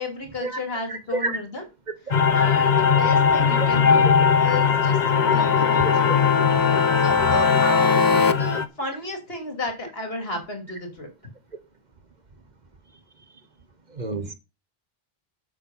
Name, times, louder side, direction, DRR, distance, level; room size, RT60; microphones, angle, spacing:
voice 1, 0.0-1.6 2.3-5.0 5.3-5.8 7.0-11.1, left 2 dB, 70° left, 3.3 m, -32 dB
voice 2, 0.9-1.4 13.9-14.3, right 2 dB, 45° right, 1.2 m, -28 dB
sound 1, 2.1-8.7, left 6 dB, 45° left, 1.1 m, -20 dB
sound 2, 5.1-8.3, left 5 dB, 25° left, 0.5 m, -21 dB
8.4 x 6.8 x 5.6 m
omnidirectional pair, 1.1 m